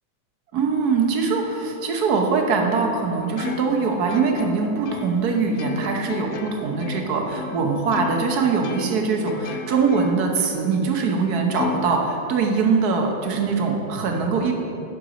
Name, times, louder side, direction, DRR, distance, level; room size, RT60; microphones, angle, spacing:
voice 1, 0.5-14.5, right 5 dB, 65° right, 2 dB, 1.4 m, -22 dB
Plucked string instrument, 3.4-8.3 8.6-10.4 10.8-10.9 11.6-12.7, left 5 dB, 70° left, 0.9 m, -33 dB
11.0 x 4.6 x 5.0 m, 2.8 s
omnidirectional pair, 1.9 m